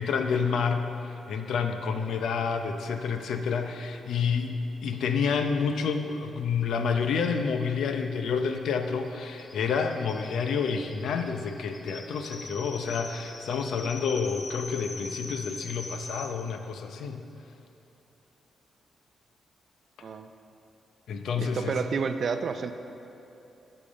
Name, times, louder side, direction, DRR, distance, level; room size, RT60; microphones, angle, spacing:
voice 1, 0.0-17.2 21.1-21.8, left 5 dB, 75° left, 6 dB, 0.6 m, -29 dB
sound 1, 6.6-6.7 6.9-7.0 7.3-16.3, left 2 dB, 30° left, 0.8 m, -43 dB
voice 2, 21.4-22.7, right 5 dB, 50° right, 9 dB, 0.4 m, -30 dB
8.5 x 7.0 x 5.2 m, 3.0 s
cardioid pair, 135°, 0 cm